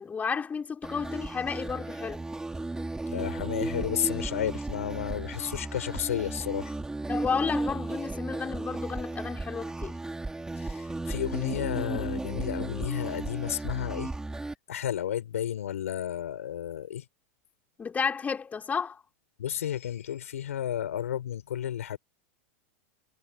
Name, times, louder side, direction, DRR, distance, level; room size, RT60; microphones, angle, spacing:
voice 1, 0.0-2.2 7.1-9.9 17.8-19.0, left 6 dB, 20° left, 6.2 m, -32 dB
sound 1, 0.8-14.5, right 2 dB, 10° right, 5.6 m, -35 dB
voice 2, 3.1-6.7 10.6-14.1 14.7-17.0 19.4-22.0, left 10 dB, 85° left, 6.1 m, -32 dB
hypercardioid pair, 110°, 7 cm